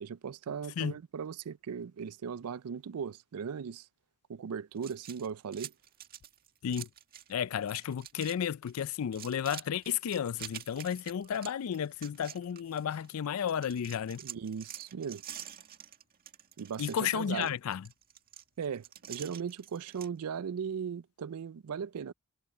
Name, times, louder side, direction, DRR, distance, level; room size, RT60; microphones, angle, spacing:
voice 1, 0.0-3.9 4.3-5.7 14.2-15.2 16.6-17.5 18.6-22.1, right 7 dB, 85° right, 0.4 m, -38 dB
sound 1, 4.8-7.3 7.6-8.4 8.7-13.1 13.5-20.1, right 10 dB, 40° right, 1.8 m, -47 dB
voice 2, 7.3-14.2 16.8-17.9, left 8 dB, 70° left, 0.4 m, -33 dB
head